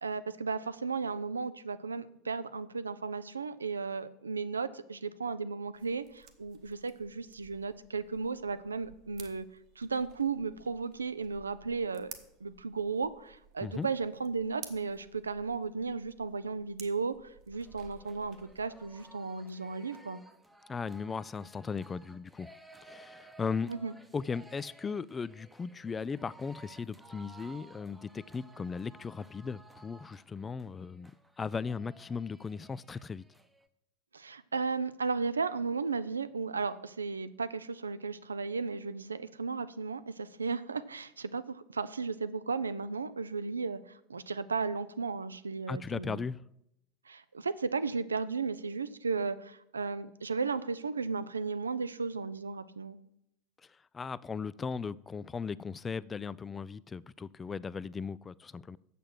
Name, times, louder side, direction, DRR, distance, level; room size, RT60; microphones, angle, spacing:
voice 1, 0.0-9.4 9.8-12.2 12.4-20.2 23.7-23.9 34.1-46.2 47.1-53.0, right 4 dB, 80° right, 0.4 m, -35 dB
sound 1, 5.7-19.1, right 7 dB, 50° right, 1.1 m, -55 dB
sound 2, 17.5-33.7, right 2 dB, 5° right, 0.8 m, -56 dB
voice 2, 20.7-22.5 22.8-23.7 24.1-31.1 31.4-33.2 45.7-46.4 53.9-58.8, left 5 dB, 20° left, 0.3 m, -37 dB
7.3 x 6.8 x 7.7 m
figure-of-eight pair, 75°, 0 cm